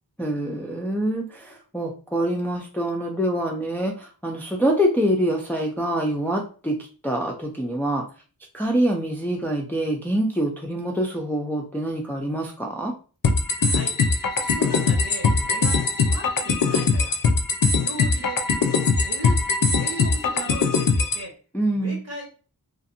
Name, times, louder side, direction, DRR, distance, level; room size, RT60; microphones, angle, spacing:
voice 1, 0.2-6.8 7.0-8.0 8.5-12.9 21.5-22.0, right 1 dB, 5° left, 0 dB, 0.4 m, -25 dB
sound 1, 13.2-21.2, left 4 dB, 60° left, 0.5 m, -21 dB
voice 2, 13.5-14.0 14.4-17.2 17.7-18.4 19.0-19.4 19.8-21.4 21.7-22.3, right 1 dB, 45° right, 0 dB, 1.0 m, -37 dB
2.5 x 2.5 x 2.8 m, 0.36 s
wide cardioid pair, 55°, 37 cm